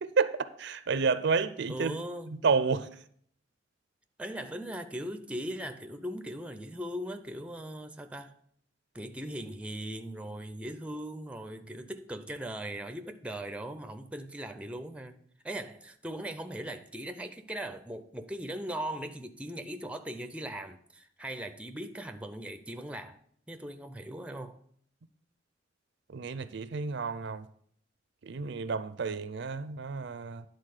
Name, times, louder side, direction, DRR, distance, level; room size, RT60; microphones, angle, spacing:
voice 1, 0.0-2.0 2.4-2.9 26.1-27.4 28.2-30.4, right 5 dB, 65° right, 0.5 m, -30 dB
voice 2, 1.7-2.4 4.2-8.3 8.9-15.2 15.4-23.2 23.5-24.6, right 1 dB, 5° right, 0.5 m, -39 dB
10.5 x 3.9 x 6.5 m
head